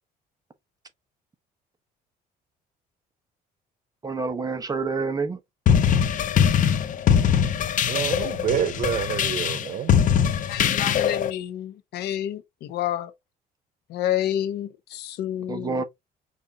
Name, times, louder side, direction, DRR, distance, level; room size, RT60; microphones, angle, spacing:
voice 1, 4.0-5.4 15.5-15.8, right 4 dB, 20° right, 1.0 m, -27 dB
sound 1, 5.7-11.3, left 8 dB, 50° left, 0.7 m, -21 dB
voice 2, 7.9-9.9, right 9 dB, 50° right, 0.5 m, -27 dB
voice 3, 10.5-13.1 13.9-15.8, left 11 dB, 75° left, 0.9 m, -29 dB
5.4 x 2.7 x 3.7 m
cardioid pair, 110°, 17 cm